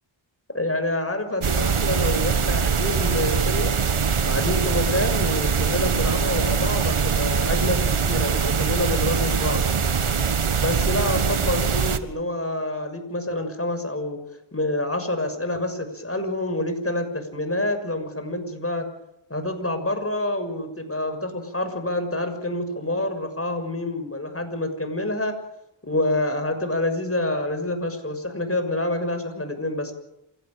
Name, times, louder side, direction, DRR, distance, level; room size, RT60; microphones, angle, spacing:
voice 1, 0.5-3.7 4.2-9.6 10.5-14.2 14.5-18.9 19.3-25.3 25.8-29.9, left 1 dB, 25° left, 7 dB, 6.6 m, -27 dB
sound 1, 1.4-12.0, right 6 dB, 80° right, 1.6 m, -22 dB
27.5 x 17.0 x 9.1 m, 0.86 s
cardioid pair, 40°, 50 cm